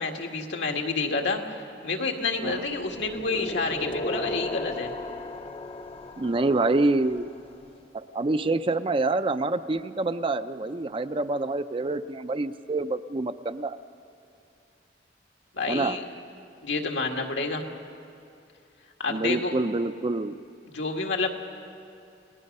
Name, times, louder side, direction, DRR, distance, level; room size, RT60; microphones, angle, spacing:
voice 1, 0.0-1.6 1.8-4.9 15.5-16.0 16.6-17.6 19.0-19.5 20.7-21.3, left 3 dB, 80° left, 2 dB, 2.0 m, -29 dB
sound 1, 2.5-7.5, left 2 dB, 35° left, 0.6 m, -36 dB
voice 2, 6.2-7.3 7.9-13.8 15.7-16.0 19.1-20.4, right 2 dB, 30° right, 11 dB, 0.5 m, -26 dB
30.0 x 19.0 x 5.4 m, 2.7 s
head